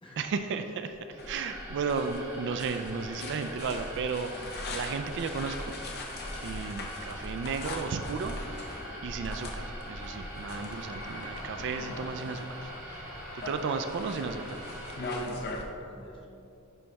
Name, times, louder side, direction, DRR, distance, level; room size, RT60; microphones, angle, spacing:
voice 1, 0.2-5.8 6.4-14.8, right 5 dB, 55° right, 8 dB, 0.3 m, -34 dB
sound 1, 1.0-11.5, equal, 5° left, 0.4 m, -45 dB
sound 2, 1.1-15.2, right 1 dB, 15° right, 1.5 m, -44 dB
sound 3, 1.2-15.6, left 2 dB, 50° left, 0.7 m, -41 dB
voice 2, 13.4-14.3 15.0-16.3, left 1 dB, 25° left, -4 dB, 1.2 m, -55 dB
10.0 x 4.1 x 3.4 m, 2.7 s
head